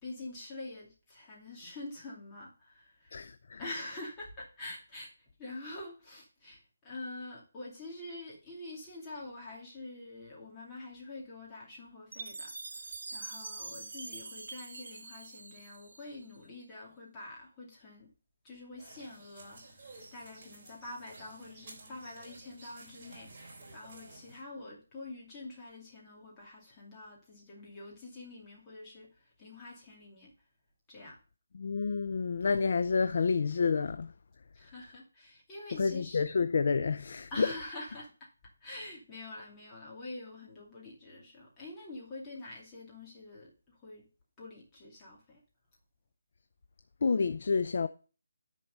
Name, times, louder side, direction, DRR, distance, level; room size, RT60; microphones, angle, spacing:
voice 1, 0.0-3.2 3.6-18.1 18.4-30.3 30.9-31.2 34.5-36.2 37.3-38.3 38.6-44.1 44.4-45.4, left 2 dB, 15° left, 2.5 m, -46 dB
voice 2, 3.1-3.6 31.5-34.1 35.8-37.5 47.0-47.9, left 5 dB, 50° left, 0.5 m, -29 dB
Chime, 12.1-16.4, right 3 dB, 75° right, 0.9 m, -44 dB
sound 1, 18.8-24.4, right 2 dB, 30° right, 3.6 m, -53 dB
10.0 x 4.6 x 6.6 m
hypercardioid pair, 170°, 0 cm